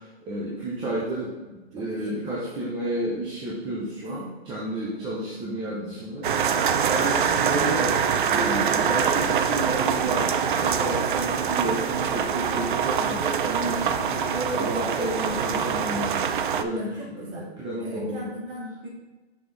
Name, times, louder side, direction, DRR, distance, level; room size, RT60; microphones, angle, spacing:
voice 1, 0.0-6.3 6.9-8.0 8.3-16.2 16.6-17.3 17.6-18.3, right 1 dB, 15° right, -7 dB, 1.0 m, -31 dB
voice 2, 1.8-2.2 4.0-4.3 4.9-5.1 13.6-13.8 16.7-17.5 17.8-18.9, equal, 30° right, -3 dB, 2.2 m, -38 dB
sound 1, 6.2-16.6, right 7 dB, 50° right, 0.5 m, -24 dB
6.1 x 5.9 x 3.5 m, 1.2 s
hypercardioid pair, 145°, 32 cm